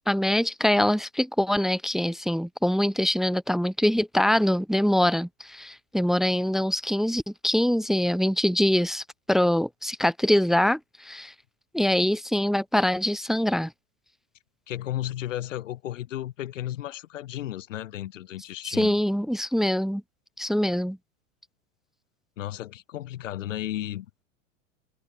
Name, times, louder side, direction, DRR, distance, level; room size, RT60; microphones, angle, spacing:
voice 1, 0.1-11.3 11.7-13.7 18.8-20.0 20.4-21.0, equal, ahead, 0.5 m, -24 dB
voice 2, 14.7-19.0 22.4-24.1, left 13 dB, 70° left, 2.0 m, -34 dB
hypercardioid pair, 95°, 39 cm